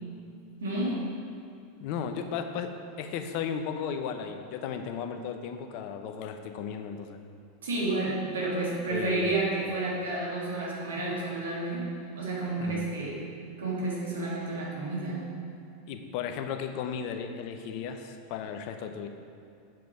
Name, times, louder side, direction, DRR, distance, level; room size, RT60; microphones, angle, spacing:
voice 1, 0.6-1.0 7.6-11.9 12.1-13.2 13.6-15.2, right 2 dB, 80° right, -4 dB, 2.2 m, -30 dB
voice 2, 1.8-7.2 8.9-9.6 12.6-12.9 15.9-19.1, left 7 dB, 55° left, 7 dB, 0.7 m, -35 dB
7.6 x 7.0 x 5.0 m, 2.5 s
hypercardioid pair, 95°, 0 cm